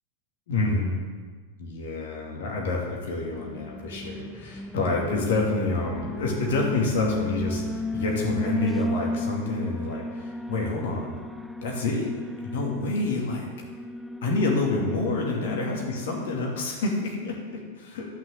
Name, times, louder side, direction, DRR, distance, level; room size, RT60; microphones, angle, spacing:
voice 1, 0.5-1.0 1.6-11.1 11.6-12.1 12.4-13.5 14.2-18.0, left 3 dB, 60° left, -1 dB, 2.6 m, -28 dB
Alarm, 3.1-16.6, left 1 dB, ahead, 0.4 m, -34 dB
11.5 x 6.0 x 7.4 m, 1.5 s
figure-of-eight pair, 90°, 0 cm